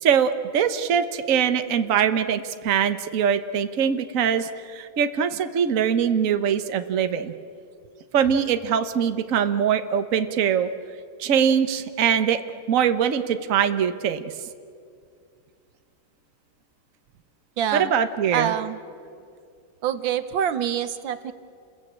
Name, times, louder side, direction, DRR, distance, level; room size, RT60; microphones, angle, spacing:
voice 1, 0.0-7.3 8.1-10.7 11.2-12.4 12.7-14.3 17.7-18.5, right 8 dB, 50° right, 9 dB, 1.3 m, -22 dB
voice 2, 17.6-17.9 18.3-18.8 19.8-21.3, right 9 dB, 75° right, 11 dB, 1.5 m, -25 dB
29.5 x 21.0 x 8.7 m, 2.3 s
omnidirectional pair, 2.1 m